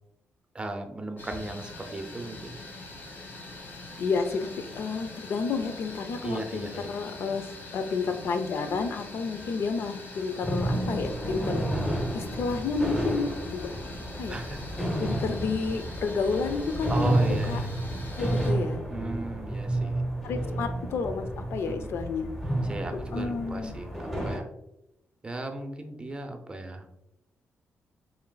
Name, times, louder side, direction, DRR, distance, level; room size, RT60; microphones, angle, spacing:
voice 1, 0.5-2.5 6.2-6.9 14.3-14.6 16.9-17.7 18.9-20.0 21.7-21.9 22.7-24.5 25.2-26.8, right 2 dB, 20° right, 5 dB, 0.5 m, -36 dB
sound 1, 1.2-18.5, left 2 dB, 50° left, 1.0 m, -43 dB
voice 2, 4.0-11.7 12.1-13.8 14.2-14.4 15.0-17.2 17.5-17.6 18.2-18.8 19.8-22.3 23.1-23.8, left 4 dB, 65° left, 8 dB, 0.4 m, -31 dB
sound 2, 10.4-24.4, right 1 dB, 10° left, 0.9 m, -31 dB
4.9 x 3.2 x 2.2 m, 0.85 s
cardioid pair, 125°, 5 cm